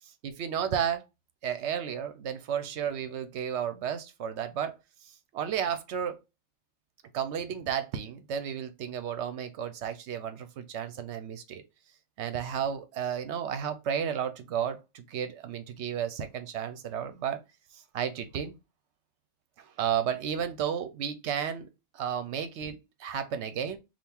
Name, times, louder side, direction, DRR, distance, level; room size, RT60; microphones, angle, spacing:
voice 1, 0.0-1.0 1.4-4.8 5.3-6.2 7.1-11.6 12.2-17.4 17.7-18.6 19.6-21.7 21.9-23.8, right 8 dB, 60° right, 0.8 m, -33 dB
3.6 x 2.4 x 4.3 m
omnidirectional pair, 1.4 m